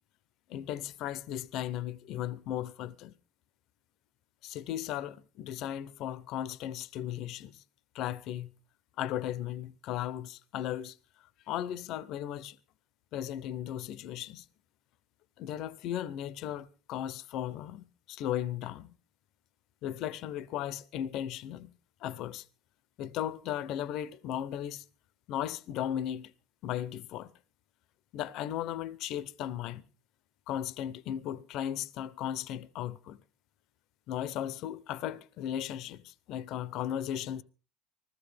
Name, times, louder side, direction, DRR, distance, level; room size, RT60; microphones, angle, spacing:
voice 1, 0.5-3.1 4.4-7.6 7.9-8.5 9.0-11.0 11.5-12.6 13.1-14.4 15.4-18.9 19.8-21.7 22.0-22.4 23.0-24.8 25.3-26.3 26.6-27.3 28.1-29.8 30.5-33.2 34.1-37.4, left 11 dB, 55° left, 0.8 m, -36 dB
20.5 x 15.5 x 3.5 m
cardioid pair, 145°, 0 cm